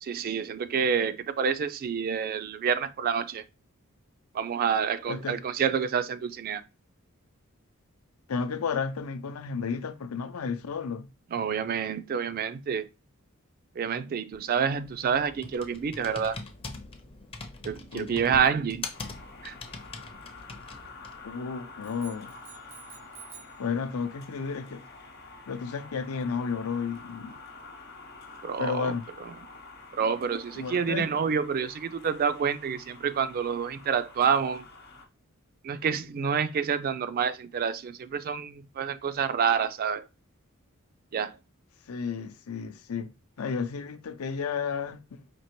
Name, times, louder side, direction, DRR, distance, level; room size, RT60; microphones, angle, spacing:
voice 1, 0.0-3.4 4.3-6.6 11.3-12.9 13.8-16.4 17.6-18.9 19.4-19.6 28.4-28.9 29.2-29.3 29.9-34.7 35.6-40.0 41.1-41.4, right 6 dB, 45° right, 0.3 m, -28 dB
voice 2, 5.1-5.4 8.3-11.1 17.9-18.4 21.2-22.3 23.6-24.8 25.5-27.3 28.6-29.0 30.5-31.1 41.9-43.1 43.4-45.2, left 5 dB, 90° left, 0.5 m, -32 dB
Computer keyboard, 14.3-21.3, left 3 dB, 25° left, 0.5 m, -42 dB
sound 1, 18.9-35.1, left 3 dB, 50° left, 0.8 m, -48 dB
sound 2, 21.8-23.6, right 9 dB, 80° right, 0.9 m, -50 dB
4.4 x 2.8 x 3.0 m
head